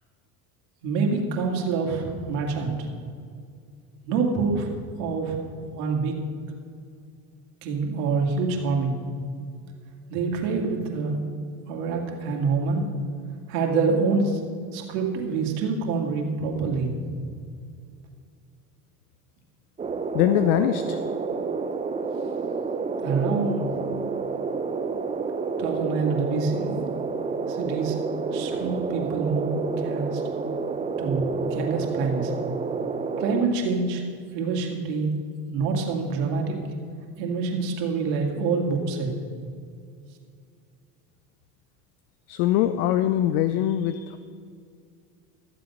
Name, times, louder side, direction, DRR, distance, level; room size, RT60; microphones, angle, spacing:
voice 1, 0.8-2.9 4.0-5.4 5.7-6.2 7.6-9.0 10.1-11.2 11.7-12.9 13.5-14.4 14.7-16.9 23.0-23.7 25.6-26.9 27.5-28.0 28.3-29.5 29.8-30.2 31.0-32.3 33.2-34.0 34.3-35.1 35.5-36.6 37.2-39.1, right 4 dB, 65° right, 0 dB, 2.3 m, -26 dB
sound 1, 19.8-33.5, right 4 dB, 15° right, 0.5 m, -29 dB
voice 2, 20.1-21.0 42.3-44.2, left 12 dB, 65° left, 10 dB, 0.7 m, -22 dB
13.5 x 7.7 x 5.5 m, 2.2 s
hypercardioid pair, 85°, 48 cm